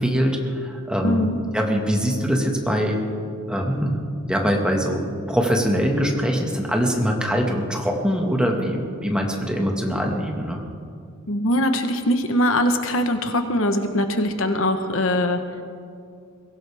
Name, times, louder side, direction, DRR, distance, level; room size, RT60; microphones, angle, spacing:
voice 1, 0.0-1.3 1.5-3.0 3.5-4.0 4.3-10.6, equal, 5° right, 0 dB, 1.7 m, -23 dB
voice 2, 1.0-1.4 11.3-15.4, left 1 dB, 70° left, 7 dB, 1.1 m, -22 dB
22.5 x 17.0 x 3.5 m, 2.3 s
head